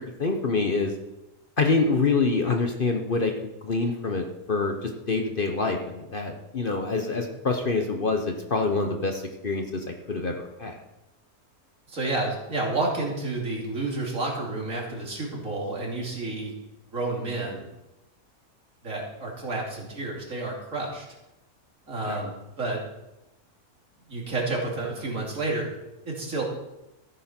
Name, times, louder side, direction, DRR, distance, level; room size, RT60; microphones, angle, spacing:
voice 1, 0.2-0.9 1.6-10.7 22.0-22.2, left 3 dB, 40° left, 4 dB, 1.0 m, -26 dB
voice 2, 11.9-16.5 16.9-17.7 18.8-21.0 21.9-22.8 24.1-25.7 26.0-26.4, right 2 dB, 60° right, -2 dB, 3.2 m, -30 dB
14.5 x 9.2 x 4.4 m, 0.95 s
omnidirectional pair, 1.5 m